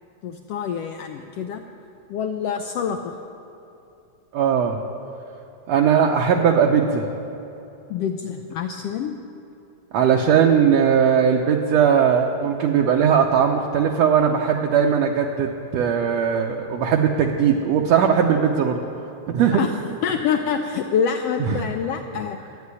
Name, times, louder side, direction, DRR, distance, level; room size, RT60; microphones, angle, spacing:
voice 1, 0.2-1.6 2.1-3.1 7.9-9.2 19.5-19.7 20.0-22.4, left 7 dB, 85° left, 5 dB, 1.3 m, -26 dB
voice 2, 4.3-4.8 5.7-7.1 9.9-18.8 19.3-19.6 21.5-21.6, right 7 dB, 70° right, 1 dB, 1.8 m, -19 dB
13.0 x 9.1 x 9.7 m, 2.9 s
omnidirectional pair, 3.4 m